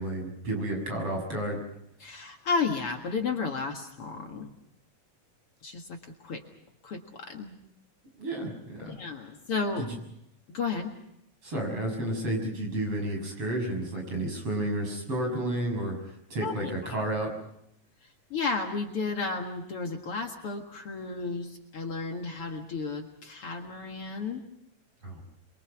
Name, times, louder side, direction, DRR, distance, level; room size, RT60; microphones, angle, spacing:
voice 1, 0.0-1.6 8.2-8.9 9.8-10.0 11.4-17.3 25.0-25.2, right 1 dB, 50° right, 2 dB, 7.5 m, -31 dB
voice 2, 2.0-4.5 5.6-6.0 6.2-6.4 6.8-7.5 8.9-9.8 10.5-10.9 16.4-17.0 18.3-24.4, left 4 dB, 50° left, 3 dB, 2.6 m, -33 dB
28.0 x 23.5 x 6.0 m, 0.79 s
omnidirectional pair, 3.4 m